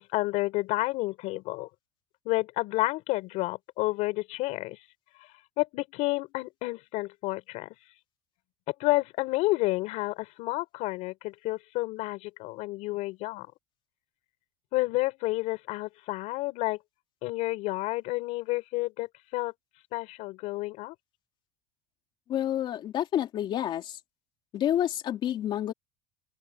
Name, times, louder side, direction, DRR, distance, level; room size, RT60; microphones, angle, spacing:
voice 1, 0.0-1.7 2.2-4.8 5.2-5.3 5.6-7.7 8.7-13.5 14.7-16.8 17.2-19.5 19.9-20.9, left 20 dB, 50° left, 5.7 m, -30 dB
voice 2, 22.3-24.0 24.5-25.7, left 11 dB, 35° left, 3.2 m, -29 dB
open air
cardioid pair, 160°, 14 cm